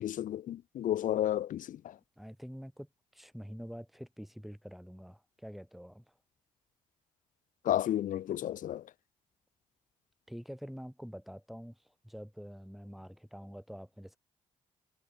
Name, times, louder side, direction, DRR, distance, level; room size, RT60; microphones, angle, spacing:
voice 1, 0.0-1.8 7.6-8.8, left 11 dB, 60° left, 0.6 m, -32 dB
voice 2, 2.2-6.0 10.3-11.8 12.0-14.2, equal, ahead, 4.3 m, -46 dB
hypercardioid pair, 50°, 15 cm